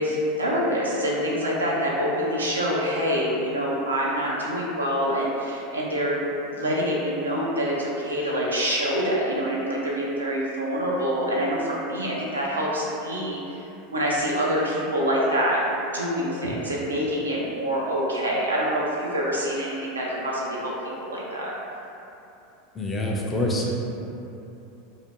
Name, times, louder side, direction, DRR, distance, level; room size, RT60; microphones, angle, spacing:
voice 1, 0.0-6.2 6.5-13.6 13.9-15.6 15.9-20.7 21.0-21.5, equal, 85° right, -5 dB, 0.4 m, -26 dB
voice 2, 22.7-23.7, left 1 dB, 20° left, -2 dB, 0.4 m, -26 dB
2.4 x 2.1 x 2.8 m, 2.9 s
figure-of-eight pair, 85°, 0 cm